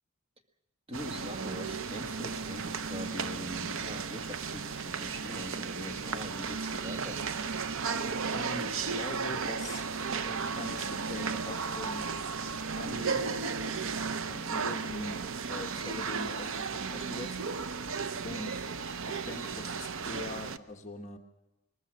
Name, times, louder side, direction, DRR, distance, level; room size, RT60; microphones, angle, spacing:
voice 1, 0.9-7.3, left 1 dB, 25° right, 1.7 m, -42 dB
sound 1, 0.9-20.6, right 5 dB, 65° right, 0.7 m, -34 dB
voice 2, 8.3-9.8 10.2-12.1 12.8-13.8 14.3-15.2 15.5-17.7 18.2-18.6 19.1-21.2, left 2 dB, 30° left, 1.2 m, -42 dB
21.5 x 20.5 x 6.3 m
head